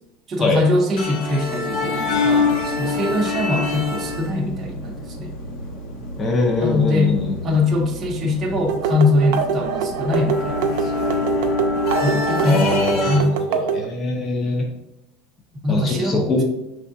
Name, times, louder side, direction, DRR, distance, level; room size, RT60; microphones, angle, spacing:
voice 1, 0.3-5.3 6.6-7.2 7.4-10.9 12.0-13.3 15.6-16.4, left 2 dB, 20° right, -2 dB, 0.6 m, -22 dB
sound 1, 1.0-13.2, left 3 dB, 55° left, 0.8 m, -26 dB
voice 2, 6.2-7.4 12.4-14.7 15.7-16.4, left 2 dB, 25° left, 0 dB, 0.6 m, -22 dB
sound 2, 8.7-13.9, right 6 dB, 70° right, 0.5 m, -24 dB
5.6 x 3.4 x 2.6 m, 0.93 s
supercardioid pair, 155°, 0 cm